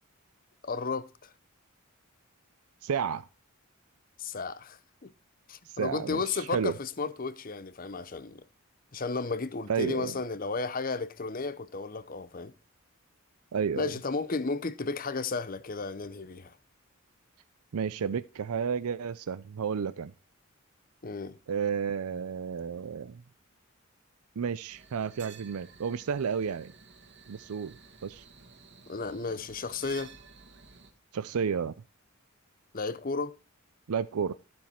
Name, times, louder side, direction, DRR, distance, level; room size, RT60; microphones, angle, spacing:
voice 1, 0.6-1.3 4.2-5.1 5.5-8.4 8.9-12.5 13.7-16.6 21.0-21.4 28.9-30.1 32.7-33.4, left 4 dB, 40° left, 0.7 m, -33 dB
voice 2, 2.8-3.3 5.7-6.7 9.7-10.1 13.5-13.9 17.7-20.1 21.5-23.2 24.4-26.7 27.3-27.7 28.0-28.2 31.1-31.7 33.9-34.3, right 6 dB, 80° right, 0.5 m, -31 dB
sound 1, 24.7-30.9, right 5 dB, 50° right, 1.6 m, -53 dB
12.5 x 7.3 x 4.3 m
head